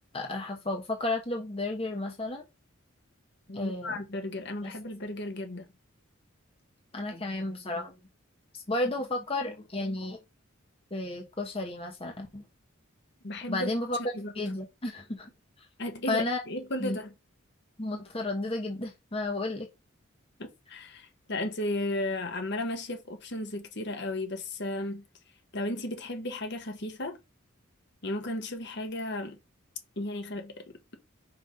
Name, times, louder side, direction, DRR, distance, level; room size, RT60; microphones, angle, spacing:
voice 1, 0.1-2.4 3.5-4.0 4.6-4.7 6.9-8.0 8.5-10.2 10.9-12.4 13.5-14.0 14.3-15.3 16.1-16.4 16.8-17.0 17.8-19.7, left 2 dB, 30° left, 1.1 m, -32 dB
voice 2, 3.5-5.7 13.2-13.7 14.0-14.5 15.8-17.1 20.4-25.0 25.5-27.2 28.0-29.4 30.0-30.6, left 1 dB, 55° left, 1.3 m, -34 dB
5.7 x 3.5 x 5.6 m
head